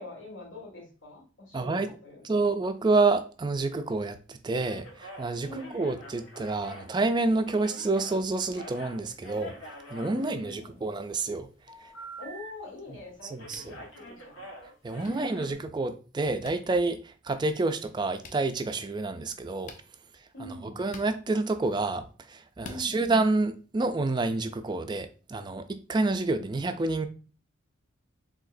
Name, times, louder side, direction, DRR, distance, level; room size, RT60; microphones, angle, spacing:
voice 1, 0.0-2.5 5.4-6.0 10.1-10.8 12.2-14.5 15.0-15.6 20.3-20.8 22.6-23.0, left 2 dB, 70° left, 2.0 m, -44 dB
voice 2, 1.5-1.9 2.2-9.6 9.9-11.5 13.3-13.6 14.8-19.7 20.8-27.1, right 3 dB, 20° right, 0.3 m, -28 dB
sound 1, 4.6-8.2 8.5-11.0 11.7-12.5 12.8-13.0 13.3-15.5, equal, 90° left, 1.5 m, -46 dB
sound 2, 13.5-13.7 15.0-15.1 16.4-16.6 18.2-18.4 19.6-19.9 20.9-21.1 22.6-22.8, left 3 dB, 40° left, 0.5 m, -45 dB
4.8 x 3.7 x 2.6 m
head